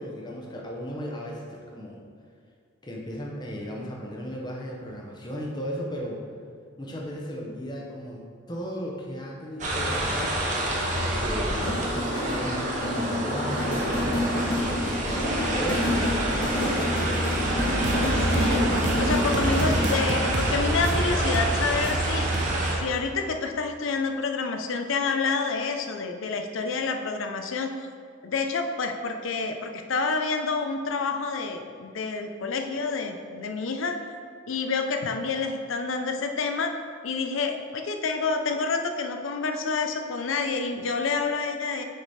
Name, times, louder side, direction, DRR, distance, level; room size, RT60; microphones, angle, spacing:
voice 1, 0.0-2.0 2.8-6.2 6.8-10.4 10.9-16.2, equal, 20° left, -1 dB, 0.8 m, -36 dB
sound 1, 9.6-22.8, right 1 dB, 35° right, 1.0 m, -27 dB
sound 2, 11.5-20.2, left 1 dB, 60° left, 1.7 m, -28 dB
sound 3, 17.4-22.6, right 2 dB, 55° right, 0.6 m, -30 dB
voice 2, 17.9-22.3 22.8-27.7 28.2-34.0 34.5-36.7 37.0-41.8, left 4 dB, 75° left, 5 dB, 0.5 m, -28 dB
6.6 x 5.0 x 4.2 m, 2.1 s
head